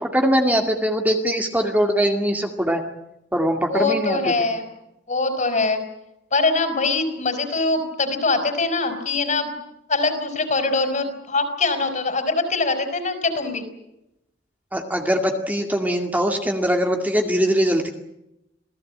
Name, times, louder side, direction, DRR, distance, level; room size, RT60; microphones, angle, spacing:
voice 1, 0.0-2.8 3.3-4.3 14.7-17.9, equal, 10° right, 3 dB, 2.3 m, -21 dB
voice 2, 3.7-4.6 5.1-5.8 6.3-9.5 9.9-13.6, left 3 dB, 40° left, 8 dB, 5.1 m, -23 dB
27.5 x 18.0 x 8.8 m, 0.86 s
head